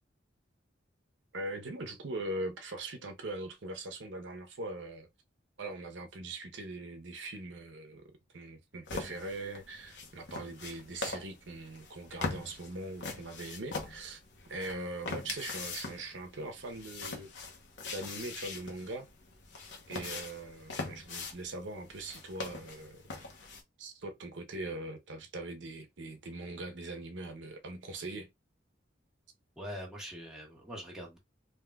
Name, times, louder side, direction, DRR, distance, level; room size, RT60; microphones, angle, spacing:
voice 1, 1.3-5.1 5.6-8.0 8.3-14.2 14.5-17.3 17.9-19.1 19.9-23.0 23.8-28.3, right 2 dB, 80° right, 0.7 m, -41 dB
sound 1, 8.9-23.6, left 3 dB, 75° left, 0.9 m, -42 dB
voice 2, 29.6-31.2, equal, 5° right, 1.2 m, -43 dB
3.6 x 2.7 x 2.2 m
head